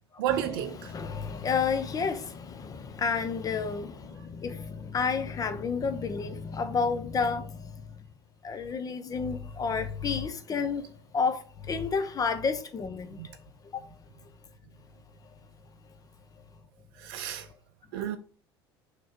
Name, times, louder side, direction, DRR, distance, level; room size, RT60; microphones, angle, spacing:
voice 1, 0.2-0.9 13.2-13.3 17.0-17.5 17.9-18.2, right 11 dB, 60° right, 0.5 m, -31 dB
voice 2, 0.9-7.7 8.4-10.8 11.1-13.2 13.7-13.8 17.9-18.1, left 5 dB, 30° left, 1.0 m, -30 dB
6.2 x 3.8 x 4.5 m
figure-of-eight pair, 65°, 13 cm